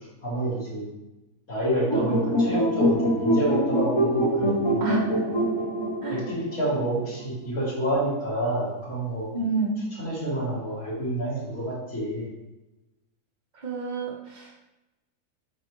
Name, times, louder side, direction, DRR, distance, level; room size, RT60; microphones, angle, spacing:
voice 1, 0.2-0.8 1.5-4.8 6.1-9.3 10.0-12.3, right 1 dB, 70° left, -8 dB, 2.9 m, -28 dB
sound 1, 1.9-7.3, right 1 dB, 30° left, 0.6 m, -25 dB
voice 2, 9.3-9.8 13.6-14.5, right 3 dB, 35° right, -2 dB, 1.2 m, -29 dB
6.5 x 4.7 x 3.0 m, 0.97 s
omnidirectional pair, 1.5 m